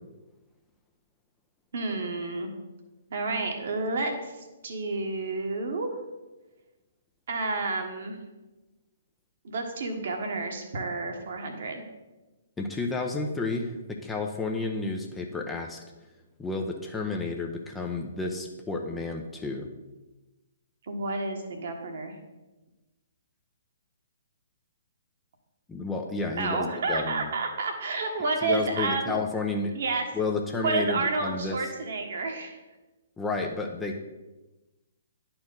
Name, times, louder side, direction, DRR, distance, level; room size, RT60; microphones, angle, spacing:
voice 1, 1.7-2.5 3.1-4.3 4.6-5.9 7.3-8.2 9.4-11.8 20.8-22.2 26.4-29.1 29.7-30.1 30.6-32.6, right 3 dB, 55° right, 3 dB, 1.3 m, -30 dB
voice 2, 12.6-13.7 14.0-15.8 16.4-19.7 25.7-27.3 28.4-29.7 30.1-31.6 33.2-34.0, left 3 dB, 10° left, 2 dB, 0.7 m, -31 dB
10.5 x 4.5 x 3.9 m, 1.1 s
figure-of-eight pair, 125°, 0 cm